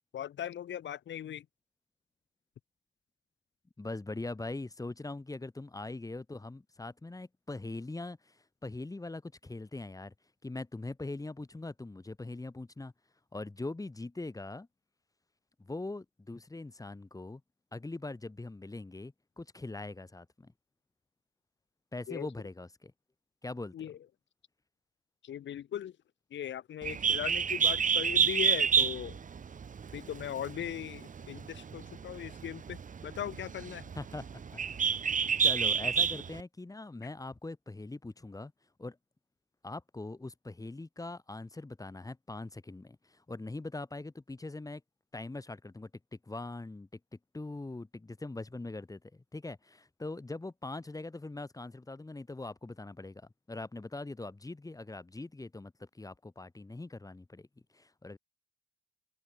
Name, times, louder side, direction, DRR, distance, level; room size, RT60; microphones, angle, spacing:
voice 1, 0.1-1.5 22.1-22.3 23.7-24.0 25.2-25.9 26.3-29.2 29.9-33.9, left 10 dB, 65° left, 5.9 m, -39 dB
voice 2, 3.8-10.1 10.4-12.9 13.3-14.7 15.6-17.4 17.7-20.5 21.9-22.9 23.4-23.9 33.9-34.6 34.9-38.5 38.8-39.0 39.6-44.8 45.1-46.9 47.3-53.2 53.5-57.5 57.7-58.2, left 2 dB, 15° left, 6.5 m, -42 dB
Bird, 26.8-36.4, right 6 dB, 40° right, 1.8 m, -29 dB
open air
cardioid pair, 90°, 20 cm